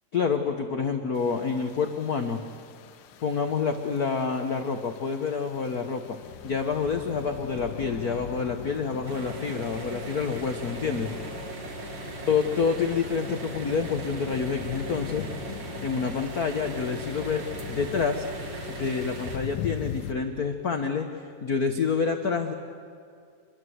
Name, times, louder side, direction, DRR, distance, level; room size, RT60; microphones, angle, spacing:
voice 1, 0.1-2.4 3.2-6.2 6.4-11.1 12.3-15.2 15.8-18.2 18.7-22.5, left 5 dB, 70° left, 5 dB, 0.8 m, -28 dB
sound 1, 1.2-20.1, left 9 dB, 85° left, 2.5 m, -41 dB
sound 2, 9.1-19.4, right 3 dB, 55° right, 2.9 m, -39 dB
27.0 x 22.5 x 8.0 m, 2.3 s
omnidirectional pair, 3.4 m